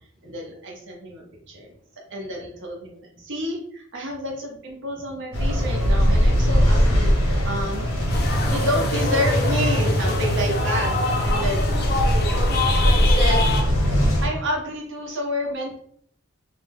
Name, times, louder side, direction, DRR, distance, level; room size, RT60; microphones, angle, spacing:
voice 1, 0.2-1.7 2.1-7.8 8.5-11.0 11.2-12.0 13.0-13.5 13.9-15.8, equal, 55° right, 0 dB, 0.7 m, -29 dB
voice 2, 1.5-1.6 4.1-4.2, equal, ahead, -5 dB, 0.6 m, -50 dB
sound 1, 5.3-14.3, equal, 70° left, 0.8 m, -21 dB
sound 2, 8.1-13.6, left 2 dB, 45° left, 0.4 m, -26 dB
2.6 x 2.1 x 3.3 m, 0.65 s
head